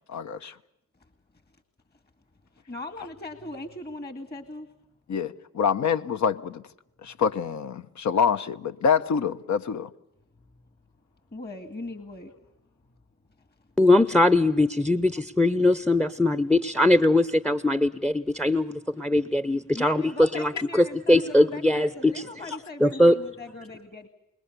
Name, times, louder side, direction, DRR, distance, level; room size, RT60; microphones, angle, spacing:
voice 1, 0.1-0.5 5.1-6.6 7.0-9.9, left 6 dB, 60° left, 1.1 m, -26 dB
voice 2, 2.7-4.7 11.3-12.4 19.7-24.1, left 2 dB, 30° left, 2.1 m, -39 dB
voice 3, 13.8-22.2 22.8-23.2, left 1 dB, 5° left, 0.8 m, -21 dB
26.0 x 21.5 x 6.8 m
supercardioid pair, 50°, 32 cm